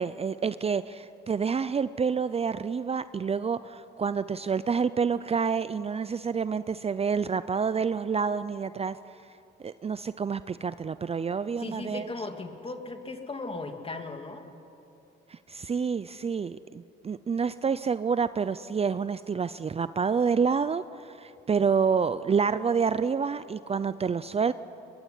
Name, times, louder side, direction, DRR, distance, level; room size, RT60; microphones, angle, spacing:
voice 1, 0.0-9.0 9.6-12.1 15.3-24.5, right 6 dB, 30° right, 14 dB, 0.6 m, -28 dB
voice 2, 11.6-14.4, left 3 dB, 30° left, 5 dB, 2.8 m, -37 dB
23.0 x 22.0 x 9.9 m, 2.8 s
cardioid pair, 90°, 20 cm